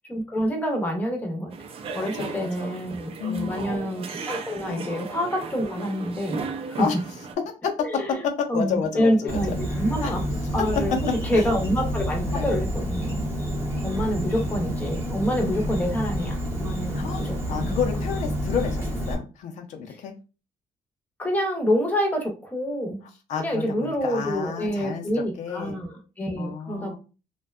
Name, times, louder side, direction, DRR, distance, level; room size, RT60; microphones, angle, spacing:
voice 1, 0.1-1.5 1.9-6.4 6.7-6.9 7.8-8.1 8.5-10.2 10.5-10.9 11.2-13.2 13.8-17.8 21.2-23.0 23.4-27.0, equal, 15° left, 2 dB, 0.7 m, -27 dB
sound 1, 1.5-7.3, right 5 dB, 50° right, 0.4 m, -36 dB
voice 2, 2.2-2.8 3.2-3.7 4.6-4.8 6.8-7.0 7.5-9.6 10.0-10.1 10.8-11.0 11.3-11.4 12.3-12.5 14.1-14.2 15.4-15.7 16.9-20.1 23.3-25.8 26.4-27.0, left 6 dB, 70° left, 4 dB, 0.5 m, -30 dB
Insect, 9.3-19.1, equal, 20° right, 0.7 m, -29 dB
2.6 x 2.2 x 2.3 m, 0.32 s
cardioid pair, 135°, 13 cm